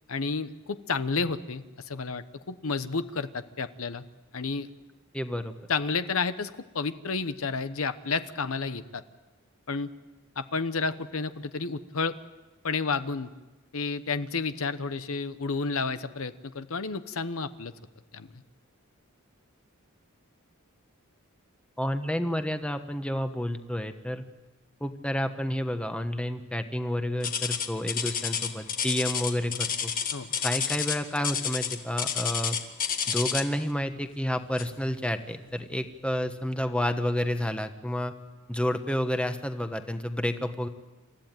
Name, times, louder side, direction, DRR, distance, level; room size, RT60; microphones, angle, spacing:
voice 1, 0.1-4.0 4.3-4.7 5.7-9.0 9.7-9.9 10.4-12.1 12.6-13.3 13.7-17.7 18.1-18.3 30.1-30.3, left 4 dB, 75° left, 12 dB, 1.0 m, -31 dB
voice 2, 5.1-5.5 21.8-24.2 24.8-29.9 30.4-32.6 33.1-38.1 38.5-40.7, left 1 dB, 5° left, 7 dB, 1.1 m, -30 dB
sound 1, 27.2-33.6 34.6-34.8 35.4-35.5 36.2-36.3, left 7 dB, 40° left, 1.8 m, -30 dB
28.0 x 14.5 x 9.1 m, 1.1 s
head